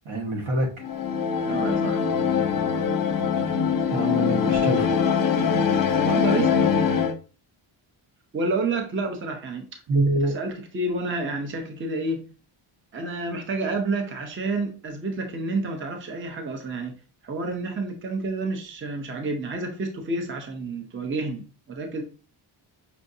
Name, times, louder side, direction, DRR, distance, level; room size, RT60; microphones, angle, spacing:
voice 1, 0.0-0.7 3.9-4.9 9.9-10.3, right 2 dB, 70° right, 1.4 m, -25 dB
sound 1, 0.8-7.1, left 6 dB, 45° left, 0.6 m, -23 dB
voice 2, 1.4-2.0 6.1-6.6 8.3-9.8 10.2-12.3 12.9-17.0 17.2-22.0, right 3 dB, 25° right, 0.6 m, -29 dB
5.6 x 2.5 x 2.6 m
cardioid pair, 115°, 49 cm